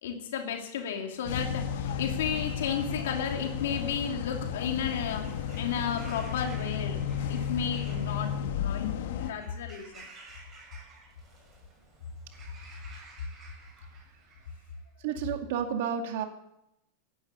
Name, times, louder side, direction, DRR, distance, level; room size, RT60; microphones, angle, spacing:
voice 1, 0.0-5.3 5.6-7.0 7.3-8.9 9.2-10.1, left 7 dB, 80° left, 2 dB, 2.8 m, -33 dB
sound 1, 1.3-9.3, left 8 dB, 65° left, 1.6 m, -33 dB
Bird vocalization bird call bird song / Crow, 4.9-14.8, right 3 dB, 20° right, 6.8 m, -53 dB
voice 2, 15.0-16.3, right 8 dB, 55° right, 5 dB, 2.2 m, -31 dB
17.5 x 11.0 x 6.8 m, 0.82 s
supercardioid pair, 170°, 0 cm